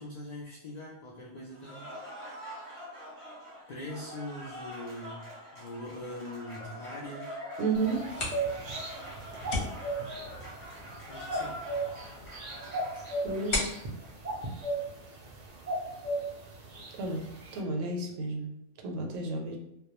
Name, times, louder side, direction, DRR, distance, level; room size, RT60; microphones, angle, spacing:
voice 1, 0.0-1.9 3.7-7.4 11.1-11.6, left 1 dB, 80° left, -4 dB, 0.3 m, -42 dB
Cheering / Applause, 1.5-14.1, equal, 10° left, 0.8 m, -44 dB
voice 2, 7.6-8.1 13.2-13.7 17.0-17.2 17.5-18.5 18.8-19.6, right 3 dB, 85° right, 2 dB, 0.9 m, -32 dB
sound 1, 7.7-17.6, right 2 dB, 60° right, 0.4 m, -37 dB
sound 2, 7.9-15.4, left 2 dB, 55° left, 0.8 m, -40 dB
2.2 x 2.1 x 2.9 m, 0.82 s
omnidirectional pair, 1.3 m